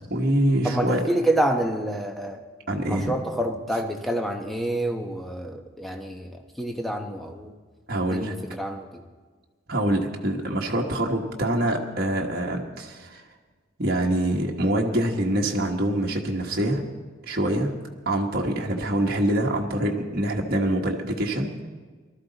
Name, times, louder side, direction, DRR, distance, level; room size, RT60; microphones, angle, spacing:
voice 1, 0.1-1.0 2.7-3.2 7.9-8.3 9.7-13.2 13.8-16.8 17.2-17.7 18.0-21.5, right 1 dB, 50° right, 0 dB, 1.3 m, -25 dB
voice 2, 0.6-2.4 2.9-7.5 8.1-9.0, right 1 dB, ahead, 3 dB, 0.9 m, -28 dB
19.0 x 13.0 x 4.0 m, 1.4 s
head